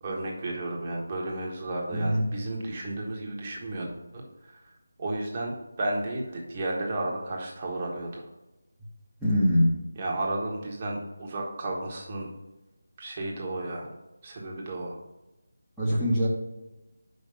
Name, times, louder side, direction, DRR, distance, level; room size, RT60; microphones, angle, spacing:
voice 1, 0.0-4.7 5.0-8.3 10.0-12.3 13.0-13.9 14.2-15.0, right 2 dB, 25° right, -1 dB, 1.4 m, -33 dB
voice 2, 1.9-2.3 9.2-9.8 15.8-16.3, equal, ahead, -13 dB, 1.2 m, -23 dB
5.8 x 5.4 x 5.3 m, 0.99 s
figure-of-eight pair, 160°, 0 cm